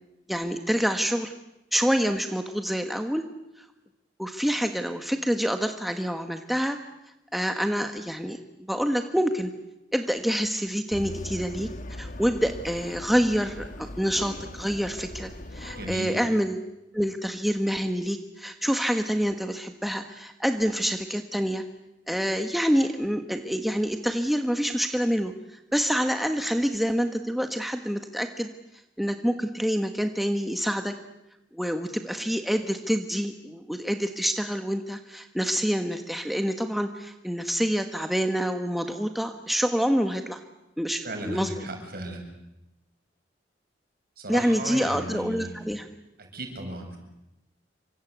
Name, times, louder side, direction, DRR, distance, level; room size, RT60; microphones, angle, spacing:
voice 1, 0.3-1.3 1.7-3.2 3.6-3.7 4.2-6.8 7.3-9.5 9.9-11.7 12.0-16.6 16.9-21.6 22.1-28.5 29.0-30.9 31.5-40.4 40.8-41.7 44.3-45.9, equal, ahead, 6 dB, 1.4 m, -27 dB
sound 1, 10.9-16.0, left 1 dB, 45° left, 1.4 m, -40 dB
voice 2, 15.8-16.2 41.0-42.3 44.2-45.6 46.2-47.0, right 1 dB, 55° right, 3 dB, 7.5 m, -35 dB
28.5 x 25.5 x 8.2 m, 0.91 s
head